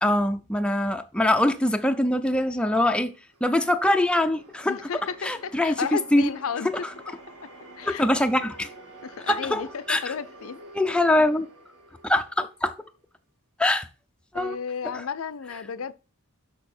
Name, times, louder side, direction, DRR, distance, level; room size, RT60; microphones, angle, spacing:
voice 1, 0.0-3.1 3.4-4.9 5.2-5.8 6.1-6.3 7.9-8.7 9.3-10.0 10.7-11.5 12.0-12.7 13.6-13.9 14.3-14.6, left 1 dB, 5° left, 0.4 m, -23 dB
sound 1, 2.6-13.0, right 1 dB, 90° right, 1.9 m, -48 dB
voice 2, 4.7-6.7 7.4-7.5 7.8-8.1 9.0-10.6 14.3-15.9, left 6 dB, 65° left, 0.5 m, -33 dB
6.4 x 6.3 x 4.3 m
head